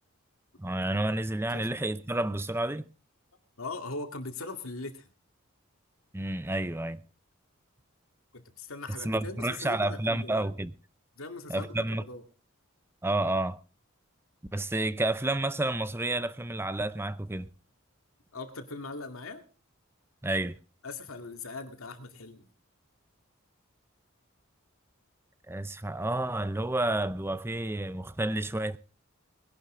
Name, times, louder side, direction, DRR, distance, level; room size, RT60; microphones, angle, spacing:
voice 1, 0.6-2.9 6.1-7.0 9.0-10.7 11.5-12.0 13.0-13.6 14.5-17.5 20.2-20.6 25.5-28.8, right 1 dB, 10° right, 0.6 m, -30 dB
voice 2, 3.6-5.1 8.3-10.5 11.2-12.2 18.3-19.4 20.8-22.5, left 3 dB, 90° left, 2.4 m, -40 dB
20.5 x 11.5 x 3.8 m
head